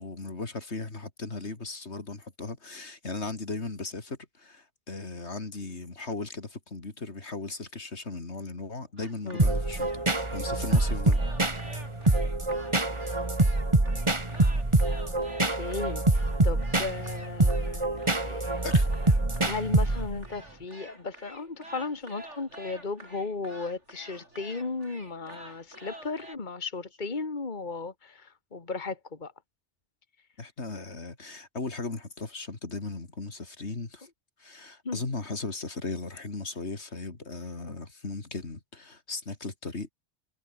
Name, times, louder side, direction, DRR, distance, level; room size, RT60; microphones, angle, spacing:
voice 1, 0.0-11.2 18.6-18.9 30.4-34.1 34.4-39.9, left 3 dB, 75° left, 3.2 m, -37 dB
sound 1, 9.0-26.4, right 1 dB, 90° right, 8.4 m, -48 dB
sound 2, 9.4-20.3, right 2 dB, 25° right, 2.2 m, -25 dB
voice 2, 14.9-15.2 15.6-18.6 19.4-29.3 34.8-35.0, left 3 dB, 40° left, 2.1 m, -36 dB
omnidirectional pair, 1.2 m